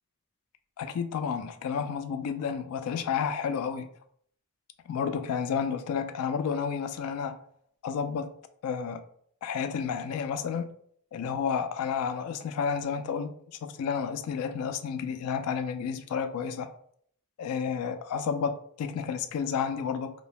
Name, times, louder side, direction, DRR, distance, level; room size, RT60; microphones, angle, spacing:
voice 1, 0.8-3.9 4.9-7.4 7.8-8.3 8.6-9.0 9.4-10.7 11.1-13.3 13.6-16.7 17.4-20.1, left 6 dB, 85° left, 0.3 m, -31 dB
2.6 x 2.0 x 3.1 m
head